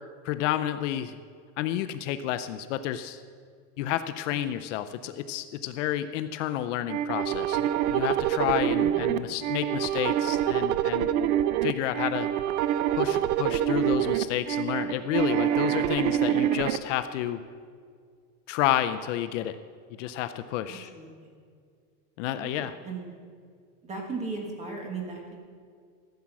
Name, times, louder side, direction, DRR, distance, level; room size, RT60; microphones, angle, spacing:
voice 1, 0.2-1.2 1.6-3.2 3.8-11.1 11.6-12.3 12.9-17.4 18.5-19.6 20.0-20.9 22.2-22.7, left 12 dB, 55° left, 10 dB, 0.5 m, -30 dB
sound 1, 6.9-16.8, right 11 dB, 65° right, 0.7 m, -26 dB
voice 2, 8.8-9.3 20.7-21.4 22.3-23.0 23.8-25.4, right 4 dB, 15° right, 1 dB, 1.6 m, -38 dB
14.0 x 7.5 x 5.9 m, 2.1 s
supercardioid pair, 165°, 46 cm